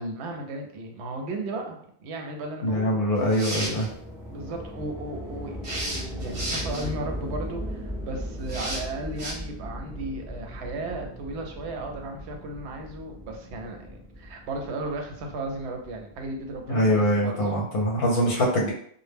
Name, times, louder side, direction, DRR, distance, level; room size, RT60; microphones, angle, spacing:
voice 1, 0.0-3.0 4.3-5.9 6.2-17.6 18.3-18.4, right 2 dB, 85° right, 3 dB, 0.9 m, -35 dB
voice 2, 2.6-3.9 16.7-18.7, equal, 65° left, -2 dB, 0.7 m, -23 dB
sound 1, 3.2-3.9 5.6-6.9 8.5-8.8 9.2-9.3, right 1 dB, 60° right, 1.0 m, -33 dB
sound 2, 3.7-16.8, equal, 5° right, 0.6 m, -38 dB
2.1 x 2.0 x 3.3 m, 0.62 s
omnidirectional pair, 1.1 m